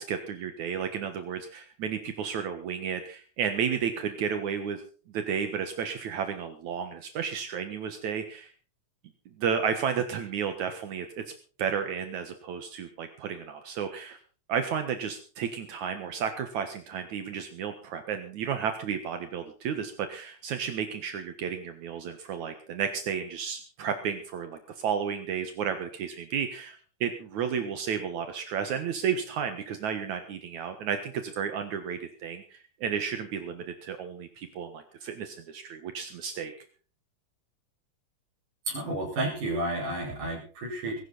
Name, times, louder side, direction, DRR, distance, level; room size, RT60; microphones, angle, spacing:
voice 1, 0.0-4.8 5.1-8.5 9.4-11.2 11.6-14.2 14.5-36.5, right 7 dB, 70° right, 8 dB, 2.8 m, -32 dB
voice 2, 38.7-41.0, right 1 dB, 90° right, -2 dB, 7.2 m, -31 dB
21.5 x 12.5 x 4.2 m, 0.39 s
omnidirectional pair, 3.5 m